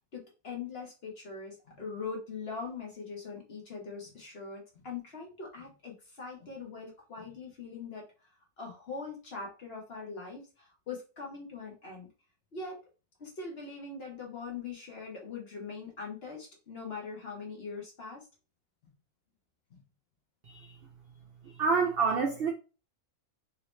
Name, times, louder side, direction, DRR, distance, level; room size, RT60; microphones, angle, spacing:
voice 1, 0.1-8.0 8.6-12.1 12.5-12.8 13.2-18.3 19.7-19.8, left 4 dB, 45° left, 1.1 m, -42 dB
voice 2, 21.4-22.5, right 5 dB, 65° right, 0.6 m, -28 dB
3.1 x 2.8 x 3.1 m
omnidirectional pair, 1.6 m